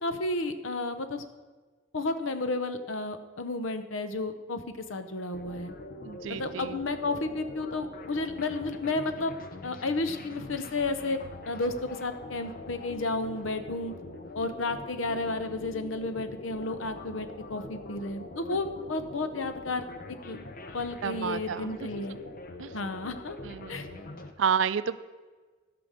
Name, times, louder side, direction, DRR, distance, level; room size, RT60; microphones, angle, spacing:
voice 1, 0.0-1.2 1.9-5.7 6.4-9.3 9.6-11.2 11.5-13.9 14.3-20.4 20.7-22.2 22.7-23.4 23.7-23.9, left 2 dB, 80° left, 10 dB, 0.9 m, -32 dB
sound 1, 5.3-24.3, left 2 dB, 45° left, 0.8 m, -43 dB
voice 2, 6.0-6.8 21.0-21.8 22.6-22.7 23.4-24.0 24.4-25.0, right 7 dB, 70° right, 15 dB, 0.4 m, -30 dB
12.5 x 6.0 x 6.5 m, 1.4 s
head